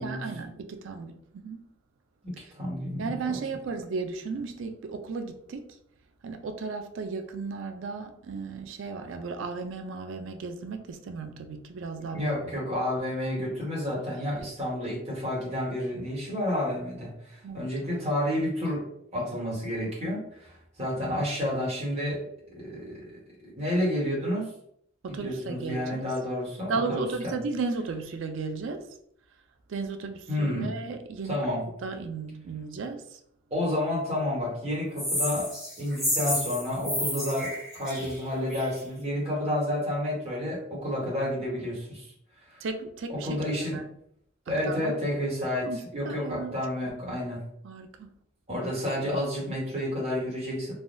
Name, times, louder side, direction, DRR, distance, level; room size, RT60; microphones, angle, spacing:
voice 1, 0.0-1.6 2.4-2.5 3.0-5.8 6.2-12.4 17.4-17.7 25.0-26.0 26.7-28.9 29.7-31.4 31.8-33.2 42.6-43.9 44.5-45.0 45.6-45.8 46.0-46.6 47.6-48.1, right 4 dB, 80° right, 0.4 m, -35 dB
voice 2, 2.2-3.1 12.1-18.8 19.1-22.2 22.5-23.2 23.6-24.5 25.1-27.3 30.3-30.7 31.2-31.6 33.5-42.1 42.5-42.6 43.1-43.8 44.5-47.4 48.5-50.7, left 1 dB, 35° right, 1.2 m, -30 dB
sound 1, 35.0-38.8, left 1 dB, ahead, 1.1 m, -31 dB
3.3 x 2.2 x 2.5 m
head